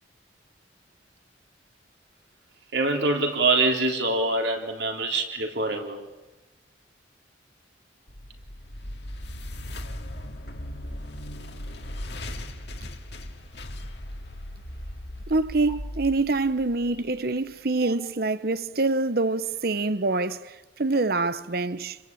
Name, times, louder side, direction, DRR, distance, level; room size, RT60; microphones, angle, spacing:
voice 1, 2.7-6.0 16.9-17.0 17.8-17.9, right 2 dB, 70° right, 3.9 m, -25 dB
sound 1, 8.1-17.2, left 1 dB, 60° left, 2.4 m, -38 dB
voice 2, 15.3-22.0, right 3 dB, 55° right, 0.9 m, -25 dB
29.5 x 22.5 x 9.0 m
head